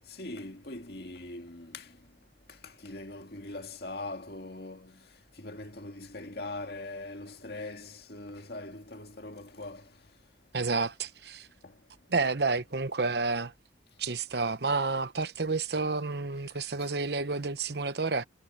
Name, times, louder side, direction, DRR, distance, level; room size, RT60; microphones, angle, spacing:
voice 1, 0.2-1.9 2.6-5.0 5.4-9.8, left 2 dB, 60° left, 2.2 m, -41 dB
voice 2, 10.5-11.5 12.1-13.5 14.0-18.2, right 3 dB, 60° right, 1.0 m, -30 dB
head